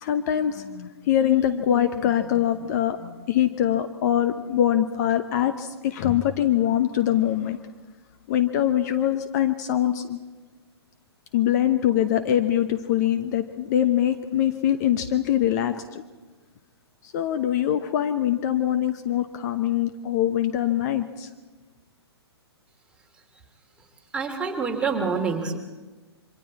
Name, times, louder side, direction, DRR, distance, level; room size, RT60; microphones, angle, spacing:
voice 1, 0.0-7.6 8.3-10.2 11.3-16.0 17.0-21.3, left 11 dB, 40° left, 9 dB, 1.0 m, -23 dB
voice 2, 24.1-25.6, right 5 dB, 5° right, 0 dB, 2.9 m, -26 dB
28.0 x 24.5 x 4.3 m, 1.2 s
figure-of-eight pair, 120°, 14 cm